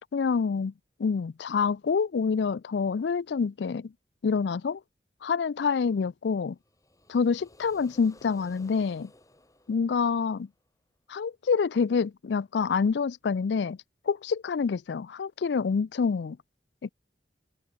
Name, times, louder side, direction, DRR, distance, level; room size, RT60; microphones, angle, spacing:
voice 1, 0.1-0.7 1.0-3.9 4.2-4.8 5.2-6.6 7.1-9.1 9.7-10.5 11.1-13.8 14.1-16.4 16.8-16.9, left 5 dB, 75° left, 0.4 m, -27 dB
sound 1, 6.6-10.6, left 1 dB, 20° left, 5.3 m, -57 dB
head